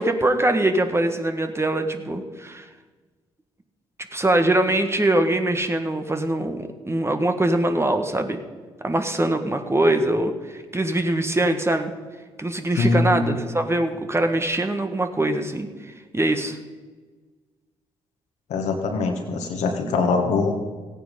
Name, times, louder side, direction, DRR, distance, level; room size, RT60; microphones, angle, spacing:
voice 1, 0.0-2.7 4.1-8.4 8.8-11.9 12.4-16.6, right 1 dB, 20° right, 6 dB, 1.5 m, -23 dB
voice 2, 12.8-13.4 18.5-20.5, left 3 dB, 75° left, 3 dB, 1.7 m, -22 dB
15.5 x 9.2 x 5.3 m, 1.4 s
hypercardioid pair, 45°, 12 cm